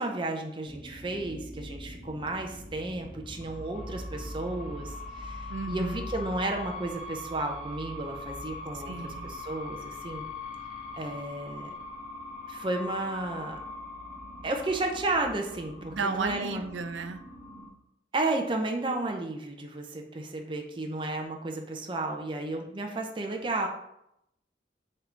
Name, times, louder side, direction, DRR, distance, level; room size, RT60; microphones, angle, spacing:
voice 1, 0.0-10.2 10.9-11.7 12.5-13.6 14.4-16.7 18.1-23.7, right 2 dB, 25° right, 3 dB, 0.6 m, -33 dB
sound 1, 0.6-17.7, left 2 dB, 5° right, 1.7 m, -41 dB
voice 2, 5.5-6.1 8.7-9.3 15.9-17.2, right 4 dB, 85° right, 9 dB, 0.5 m, -34 dB
7.5 x 3.9 x 3.3 m, 0.80 s
head